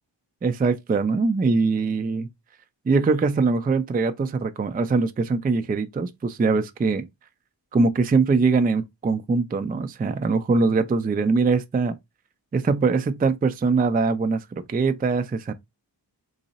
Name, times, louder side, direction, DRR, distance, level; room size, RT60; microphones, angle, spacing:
voice 1, 0.4-2.3 2.9-7.0 7.7-11.9 12.5-15.5, right 4 dB, 20° right, 0.3 m, -22 dB
3.6 x 2.0 x 3.9 m
wide cardioid pair, 80°, 44 cm